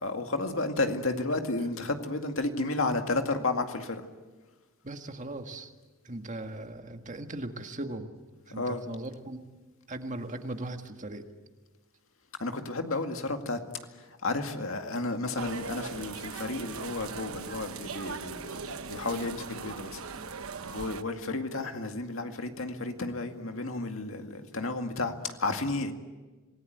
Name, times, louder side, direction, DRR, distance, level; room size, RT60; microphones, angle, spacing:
voice 1, 0.0-4.0 8.6-8.8 12.4-13.6 14.0-20.0 20.7-25.9, left 2 dB, 70° left, 5 dB, 2.1 m, -32 dB
voice 2, 4.8-5.7 6.0-8.1 8.5-9.4 9.9-11.3, right 1 dB, 35° right, 6 dB, 1.8 m, -38 dB
sound 1, 15.4-21.0, right 5 dB, 85° right, 1.1 m, -39 dB
27.0 x 19.0 x 9.3 m, 1.3 s
head